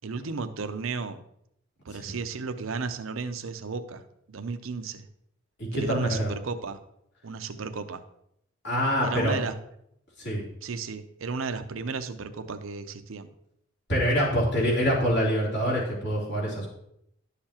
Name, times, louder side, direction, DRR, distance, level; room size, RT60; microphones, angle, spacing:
voice 1, 0.0-1.2 1.8-4.0 4.3-5.1 5.7-6.8 7.2-8.0 9.0-9.6 10.6-13.3, right 4 dB, 70° right, 9 dB, 0.7 m, -34 dB
voice 2, 5.6-6.3 8.6-9.4 10.2-10.4 13.9-16.7, equal, 55° left, -5 dB, 3.2 m, -25 dB
11.5 x 6.8 x 2.9 m, 0.75 s
head